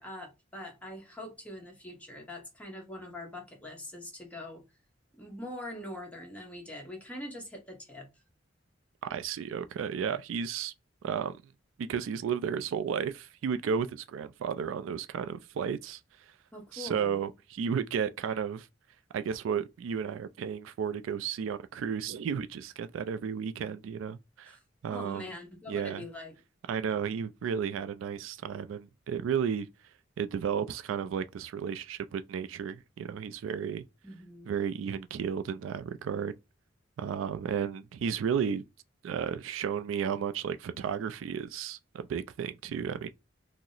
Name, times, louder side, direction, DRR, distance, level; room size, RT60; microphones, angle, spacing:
voice 1, 0.0-4.6 5.2-8.1 16.5-17.2 24.4-24.6 24.9-26.3 34.0-34.5, left 1 dB, 5° left, 1.0 m, -43 dB
voice 2, 9.1-10.7 11.0-11.4 11.8-16.0 16.7-18.7 19.1-24.5 24.8-25.3 25.7-26.0 26.7-29.7 30.2-33.8 34.5-36.4 37.0-38.6 39.0-43.1, right 7 dB, 85° right, 0.3 m, -33 dB
2.8 x 2.0 x 3.8 m
head